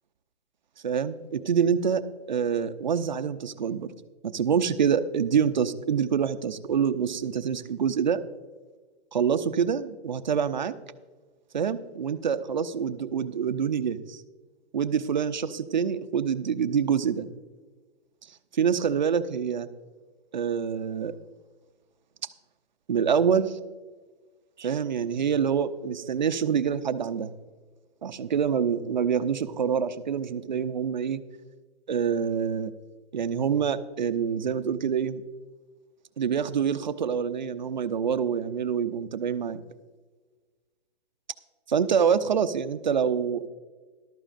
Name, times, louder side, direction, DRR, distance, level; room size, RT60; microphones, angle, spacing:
voice 1, 0.8-2.0 2.3-3.9 4.2-8.2 9.1-10.7 11.5-14.2 14.7-17.3 18.5-19.7 20.3-21.1 22.9-23.5 24.6-27.3 28.0-31.2 31.9-32.7 33.1-35.2 36.2-39.6 41.7-43.5, right 7 dB, 45° right, 11 dB, 0.5 m, -26 dB
14.0 x 12.0 x 2.5 m, 1.4 s
hypercardioid pair, 180°, 33 cm